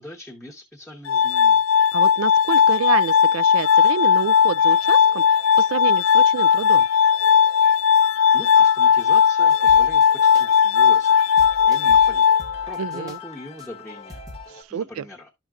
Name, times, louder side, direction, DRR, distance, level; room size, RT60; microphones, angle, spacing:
voice 1, 0.0-1.6 8.3-12.3 12.7-15.3, left 1 dB, ahead, 0.9 m, -41 dB
Glass, 1.1-13.1, left 7 dB, 80° left, 0.4 m, -17 dB
voice 2, 1.9-5.2 5.6-6.9 12.8-13.2 14.5-15.0, right 8 dB, 90° right, 0.3 m, -28 dB
sound 1, 3.4-14.6, left 7 dB, 30° left, 0.7 m, -43 dB
sound 2, 9.5-10.1 10.3-10.6 10.9-11.1 11.4-13.2 13.6-13.7 14.1-14.4, left 1 dB, 20° right, 1.1 m, -42 dB
11.0 x 6.0 x 2.4 m
head